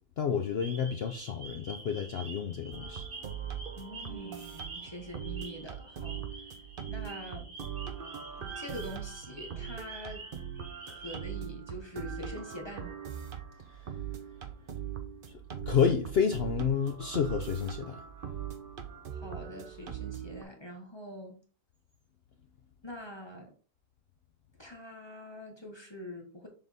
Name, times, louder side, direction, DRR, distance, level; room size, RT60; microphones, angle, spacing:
voice 1, 0.2-3.0 15.7-18.0, left 7 dB, 80° left, 0.5 m, -29 dB
sound 1, 0.6-11.3, right 3 dB, 25° right, 2.0 m, -48 dB
sound 2, 2.7-20.4, right 9 dB, 60° right, 0.5 m, -41 dB
voice 2, 3.8-6.2 6.9-7.5 8.4-10.3 10.9-13.0 19.1-21.4 22.8-23.5 24.6-26.5, left 1 dB, 20° left, 1.1 m, -44 dB
6.9 x 4.0 x 3.5 m
omnidirectional pair, 1.8 m